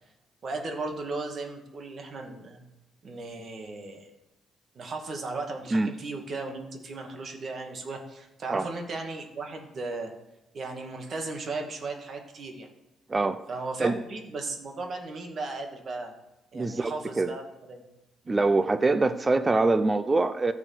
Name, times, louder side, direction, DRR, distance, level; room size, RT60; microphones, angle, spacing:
voice 1, 0.4-2.6 3.0-4.1 4.8-10.1 10.5-12.7 13.5-16.1 16.5-17.8 18.2-18.4, right 3 dB, 50° right, 2.2 m, -36 dB
voice 2, 13.1-13.4 13.8-14.0 16.5-17.3 18.3-20.5, right 3 dB, 25° right, 0.6 m, -24 dB
14.0 x 4.9 x 7.9 m
cardioid pair, 90°, 0 cm